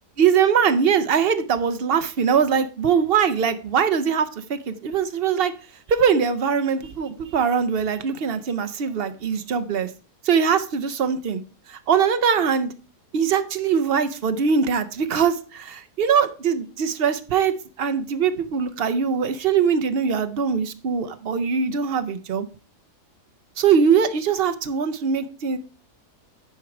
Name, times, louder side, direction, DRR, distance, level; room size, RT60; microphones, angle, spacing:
voice 1, 0.2-5.5 5.9-9.9 10.2-11.4 11.7-12.7 13.1-22.5 23.6-25.6, right 7 dB, 55° right, 10 dB, 0.6 m, -22 dB
10.0 x 4.6 x 4.8 m, 0.37 s
omnidirectional pair, 1.7 m